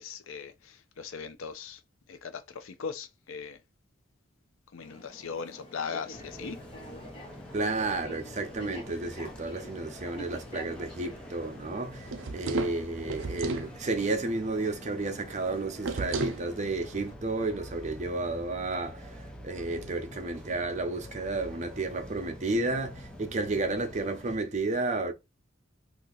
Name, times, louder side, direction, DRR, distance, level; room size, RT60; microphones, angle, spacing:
voice 1, 0.0-1.8 2.1-3.6 4.7-6.6, left 6 dB, 80° left, 0.5 m, -39 dB
sound 1, 4.8-17.1, equal, 25° left, 0.9 m, -48 dB
sound 2, 6.1-24.4, equal, 5° left, 0.5 m, -46 dB
voice 2, 7.5-25.1, right 2 dB, 35° right, 0.7 m, -32 dB
sound 3, 12.0-13.7 15.8-16.4, right 3 dB, 75° right, 0.6 m, -33 dB
2.8 x 2.7 x 3.8 m
head